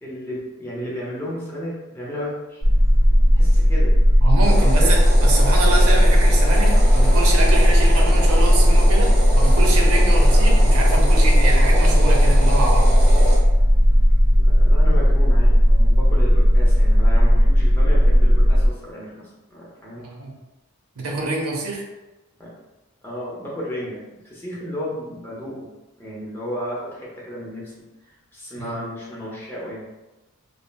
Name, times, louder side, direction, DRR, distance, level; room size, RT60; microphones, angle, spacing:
voice 1, 0.0-2.6 3.3-3.9 4.4-4.9 14.4-20.0 22.4-22.5 23.0-25.7 26.0-29.8, equal, 10° left, -7 dB, 0.6 m, -33 dB
sound 1, 2.6-18.7, equal, 55° left, 0.7 m, -15 dB
voice 2, 4.2-9.1 9.4-12.9 20.0-20.3 21.0-21.8 28.6-28.8, right 2 dB, 80° right, -1 dB, 0.6 m, -26 dB
sound 2, 4.4-13.4, right 1 dB, 30° right, 0.5 m, -29 dB
3.2 x 2.1 x 2.2 m, 1.0 s
head